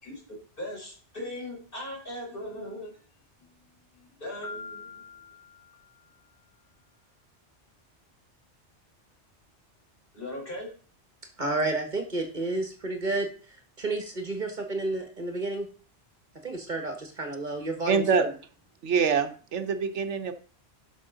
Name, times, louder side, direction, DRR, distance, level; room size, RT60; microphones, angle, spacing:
voice 1, 0.0-2.9 3.4-3.5 3.9-5.0 10.1-10.7, left 1 dB, 50° left, -3 dB, 4.8 m, -39 dB
Piano, 4.4-6.3, left 4 dB, 30° left, 5.2 m, -44 dB
voice 2, 11.4-13.3 13.8-15.7 16.4-18.3, right 2 dB, 40° right, 4 dB, 1.8 m, -31 dB
voice 3, 17.9-18.3 18.8-20.3, right 6 dB, 90° right, 9 dB, 1.3 m, -25 dB
11.5 x 6.1 x 3.9 m, 0.41 s
omnidirectional pair, 1.2 m